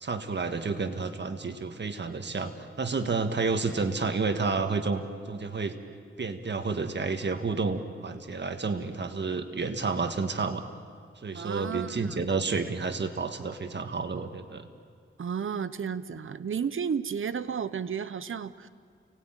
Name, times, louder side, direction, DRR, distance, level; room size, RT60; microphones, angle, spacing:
voice 1, 0.0-2.5 2.8-5.0 5.3-5.8 6.2-10.6 11.2-14.7, right 4 dB, 55° right, 7 dB, 1.6 m, -30 dB
voice 2, 11.3-12.3 15.2-18.7, right 7 dB, 75° right, 14 dB, 0.9 m, -33 dB
30.0 x 19.0 x 9.0 m, 2.1 s
wide cardioid pair, 95°, 21 cm